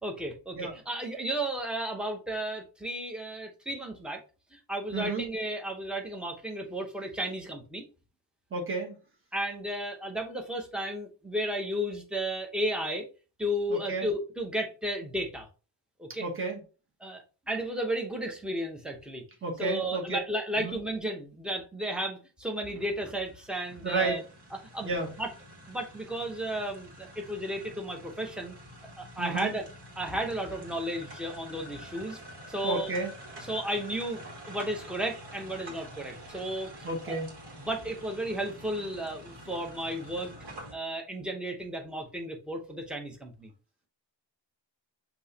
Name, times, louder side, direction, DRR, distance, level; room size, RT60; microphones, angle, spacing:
voice 1, 0.0-4.2 4.5-7.8 9.3-13.1 13.4-15.5 16.0-16.2 17.0-19.2 19.6-24.2 24.7-25.3 25.7-28.5 29.0-29.6 30.0-32.2 32.5-32.9 33.4-36.7 37.1-37.2 37.6-40.3 40.7-43.5, right 1 dB, ahead, 2 dB, 0.8 m, -33 dB
voice 2, 4.9-5.2 8.5-9.0 13.7-14.1 16.2-16.6 19.4-20.2 20.6-20.8 23.8-24.2 24.8-25.1 29.2-29.5 32.6-33.1 36.8-37.3, right 3 dB, 25° right, 0 dB, 1.2 m, -31 dB
sound 1, 22.7-40.7, equal, 60° right, 1.8 m, -47 dB
6.1 x 2.9 x 2.8 m, 0.33 s
wide cardioid pair, 165°, 46 cm